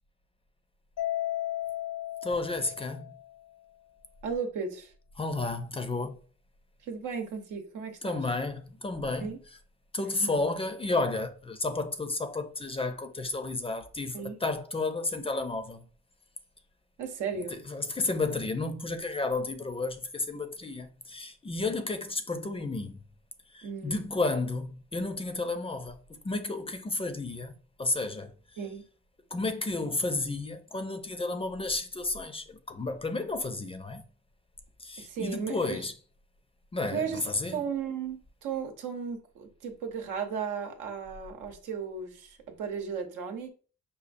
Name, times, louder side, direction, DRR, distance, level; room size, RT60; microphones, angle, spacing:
Mallet percussion, 1.0-3.4, left 13 dB, 80° left, 0.7 m, -34 dB
voice 1, 2.2-3.1 5.2-6.2 8.0-9.4 9.9-15.9 17.7-23.0 23.5-27.5 27.8-28.3 29.3-34.1 34.8-35.9 36.7-37.6, left 3 dB, 20° left, 0.4 m, -32 dB
voice 2, 4.2-4.9 6.8-8.2 9.2-9.4 10.0-10.5 14.1-14.3 17.0-17.6 23.6-24.1 28.6-28.8 35.0-35.9 36.9-37.2 37.5-43.5, right 6 dB, 85° right, 0.8 m, -35 dB
5.1 x 2.3 x 2.6 m
cardioid pair, 90°, 30 cm